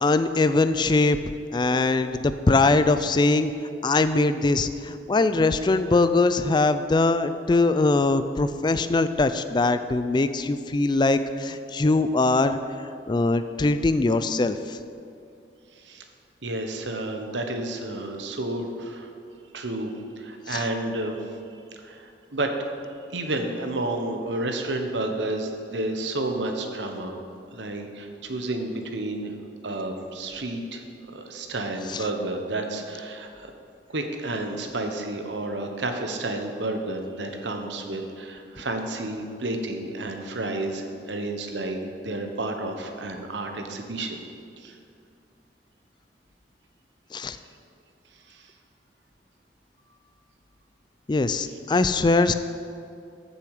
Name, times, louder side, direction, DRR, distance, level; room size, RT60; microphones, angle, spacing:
voice 1, 0.0-1.2 1.5-3.5 3.8-12.6 13.1-14.8 20.5-20.6 31.9-32.0 47.1-47.4 51.1-52.3, left 3 dB, 25° left, 11 dB, 0.4 m, -22 dB
voice 2, 16.4-19.1 19.5-21.3 21.8-22.5 23.1-27.2 27.5-29.3 29.6-30.8 31.1-33.5 33.9-44.2 44.6-44.7 48.3-48.4, right 2 dB, 90° right, 4 dB, 1.1 m, -31 dB
13.5 x 7.0 x 4.9 m, 2.5 s
head